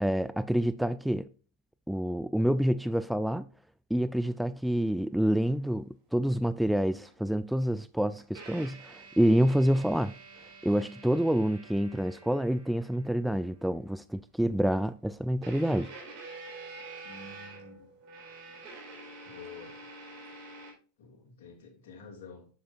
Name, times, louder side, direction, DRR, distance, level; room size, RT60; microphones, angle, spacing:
voice 1, 0.0-1.3 1.9-3.5 3.9-5.8 6.1-10.1 10.6-15.9, right 1 dB, ahead, 0.3 m, -27 dB
sound 1, 7.1-7.2 8.2-14.1 15.4-20.7, right 3 dB, 55° right, 4.1 m, -48 dB
voice 2, 17.0-17.9 19.3-19.7 21.0-22.5, left 4 dB, 70° left, 2.8 m, -49 dB
8.5 x 7.0 x 2.5 m
hypercardioid pair, 100°, 0 cm